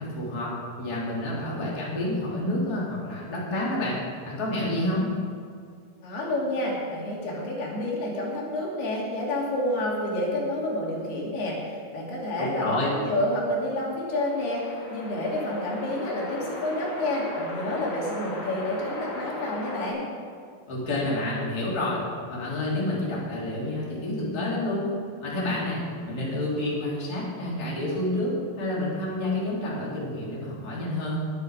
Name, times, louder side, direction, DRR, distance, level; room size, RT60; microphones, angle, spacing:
voice 1, 0.0-4.0 4.2-5.1 12.4-12.9 20.7-22.0 22.3-31.1, left 1 dB, 25° left, -5 dB, 3.4 m, -29 dB
voice 2, 6.0-20.0, left 1 dB, 75° left, -4 dB, 4.6 m, -29 dB
sound 1, 14.1-19.9, left 1 dB, 50° left, 4.3 m, -37 dB
21.5 x 9.3 x 5.1 m, 2.2 s
omnidirectional pair, 4.7 m